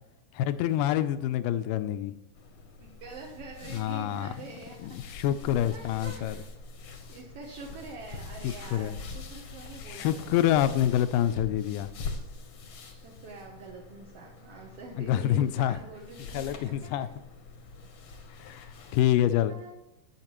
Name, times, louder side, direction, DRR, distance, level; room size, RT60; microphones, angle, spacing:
voice 1, 0.3-2.1 3.7-4.3 4.8-6.4 8.4-9.0 9.9-11.9 15.0-15.8 16.3-17.1 18.4-19.6, left 11 dB, 85° left, 12 dB, 2.1 m, -27 dB
sound 1, 2.3-19.0, left 4 dB, 65° left, 1.5 m, -44 dB
voice 2, 2.8-5.1 5.7-6.5 7.1-10.8 12.7-16.7 19.5-19.7, right 4 dB, 65° right, -1 dB, 1.5 m, -46 dB
17.0 x 5.8 x 3.0 m, 0.89 s
omnidirectional pair, 3.9 m